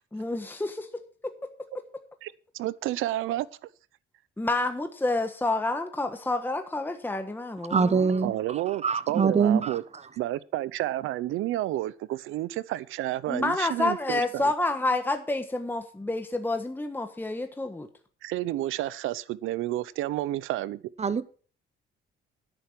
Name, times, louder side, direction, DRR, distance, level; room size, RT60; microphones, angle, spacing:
voice 1, 0.1-0.9 1.2-1.5 4.4-8.1 13.3-17.9, left 2 dB, 10° left, 1.3 m, -29 dB
voice 2, 2.2-3.5 8.2-9.8 10.2-14.5 18.2-20.8, right 15 dB, 90° right, 0.7 m, -30 dB
voice 3, 7.7-8.3 8.8-9.7 21.0-21.2, right 5 dB, 35° right, 1.1 m, -23 dB
10.5 x 9.1 x 6.0 m
cardioid pair, 90°, 20 cm